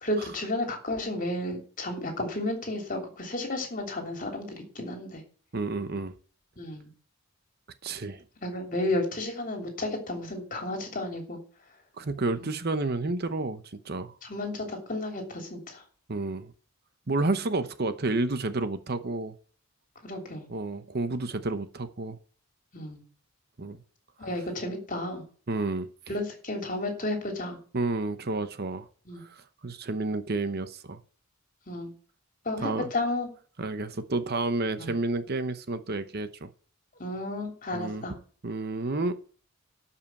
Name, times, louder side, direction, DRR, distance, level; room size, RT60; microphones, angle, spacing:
voice 1, 0.0-5.2 6.6-6.9 8.4-11.4 12.4-12.5 14.2-15.8 17.2-17.3 20.0-20.5 22.7-23.0 24.2-25.2 26.1-27.6 29.1-29.2 31.7-31.9 32.4-33.3 34.8-34.9 37.0-38.1, left 1 dB, 40° left, 3.2 m, -32 dB
voice 2, 5.5-6.1 7.8-8.2 12.0-14.1 16.1-16.5 17.1-19.3 20.5-22.2 23.6-23.8 25.5-25.9 27.7-28.9 29.2-31.0 32.6-32.9 33.6-36.5 37.7-38.1 38.4-39.2, right 2 dB, 45° right, 0.8 m, -30 dB
12.5 x 5.7 x 8.2 m
head